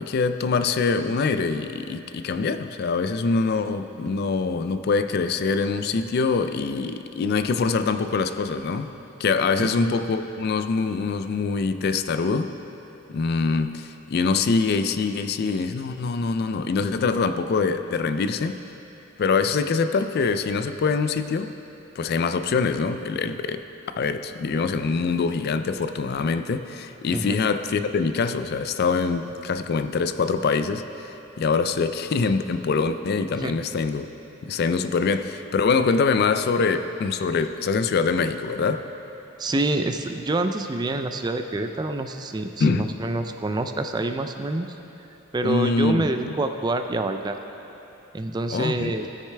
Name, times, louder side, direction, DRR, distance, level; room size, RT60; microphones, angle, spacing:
voice 1, 0.0-8.9 9.2-12.5 13.1-18.6 19.2-21.5 22.0-23.6 24.0-34.1 34.4-38.9 42.6-42.9 45.4-46.4 48.5-48.9, left 4 dB, 50° left, 10 dB, 0.3 m, -24 dB
voice 2, 9.6-9.9 27.1-27.4 33.3-33.5 39.4-44.8 45.3-47.4 48.1-49.1, right 2 dB, 20° right, 7 dB, 0.3 m, -27 dB
16.5 x 6.5 x 3.3 m, 3.0 s
head